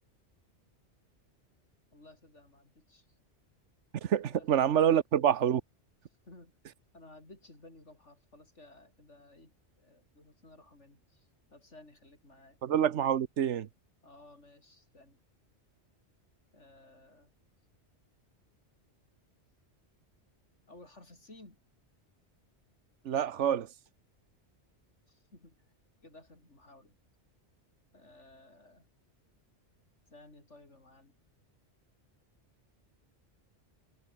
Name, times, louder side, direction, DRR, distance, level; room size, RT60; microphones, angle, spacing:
voice 1, 1.9-3.1 4.3-4.5 4.8-4.9 6.2-6.5 6.9-12.6 14.0-15.2 16.5-17.3 20.7-21.6 25.1-25.6 26.0-27.0 27.9-28.9 30.1-31.2, left 2 dB, 85° left, 5.8 m, -56 dB
voice 2, 4.0-5.6 12.6-13.7 23.0-23.7, right 9 dB, 85° right, 1.2 m, -27 dB
omnidirectional pair, 1.2 m